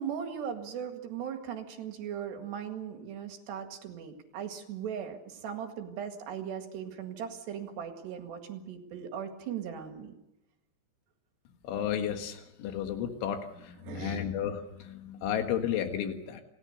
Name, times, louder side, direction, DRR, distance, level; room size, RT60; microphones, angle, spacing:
voice 1, 0.0-10.1 13.8-14.2, right 8 dB, 65° right, 5 dB, 4.0 m, -38 dB
voice 2, 11.6-16.4, left 9 dB, 90° left, 5 dB, 4.1 m, -33 dB
29.5 x 17.5 x 6.8 m, 0.93 s
omnidirectional pair, 5.3 m